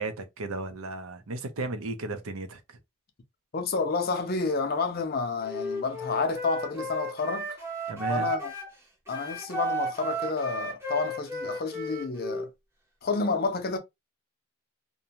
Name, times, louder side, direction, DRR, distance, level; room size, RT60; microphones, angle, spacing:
voice 1, 0.0-2.6 7.9-8.3, right 2 dB, 80° right, 0.6 m, -34 dB
voice 2, 3.5-7.6 8.1-8.5 9.1-12.5 13.0-13.8, left 4 dB, 45° left, 0.5 m, -30 dB
Wind instrument woodwind instrument, 5.4-8.7 9.1-12.5, right 1 dB, 10° right, 0.6 m, -34 dB
2.5 x 2.2 x 2.8 m
head